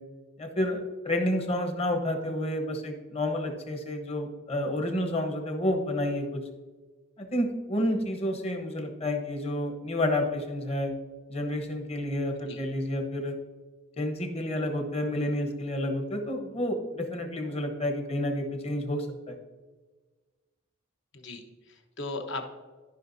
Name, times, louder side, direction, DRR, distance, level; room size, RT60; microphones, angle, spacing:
voice 1, 0.4-6.4 7.2-10.9 11.3-13.4 14.0-19.4, left 1 dB, 30° left, 4 dB, 1.1 m, -30 dB
voice 2, 21.1-22.4, left 2 dB, 60° left, 4 dB, 1.1 m, -37 dB
13.5 x 5.7 x 2.7 m, 1.3 s
head